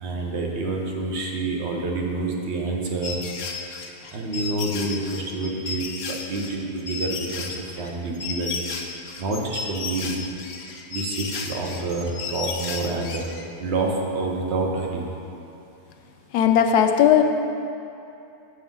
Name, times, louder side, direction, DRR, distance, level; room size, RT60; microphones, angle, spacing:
voice 1, 0.0-3.2 4.1-5.8 6.3-8.6 9.2-10.2 10.9-13.2 13.6-15.1, right 3 dB, 55° right, 0 dB, 0.9 m, -27 dB
sound 1, 3.0-13.4, left 4 dB, 65° left, 0.8 m, -33 dB
voice 2, 16.3-17.2, left 9 dB, 90° left, 5 dB, 1.1 m, -17 dB
7.1 x 6.9 x 3.7 m, 2.8 s
omnidirectional pair, 1.7 m